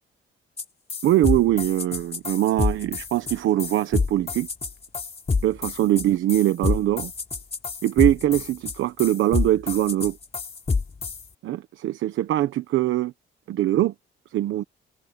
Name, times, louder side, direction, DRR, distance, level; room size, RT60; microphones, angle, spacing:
sound 1, 0.6-0.7 0.9-11.2, left 4 dB, 30° left, 3.7 m, -27 dB
voice 1, 1.0-4.5 5.4-7.1 7.8-10.2 11.4-13.1 13.5-13.9 14.3-14.6, right 13 dB, 80° right, 1.1 m, -22 dB
cardioid pair, 90°, 20 cm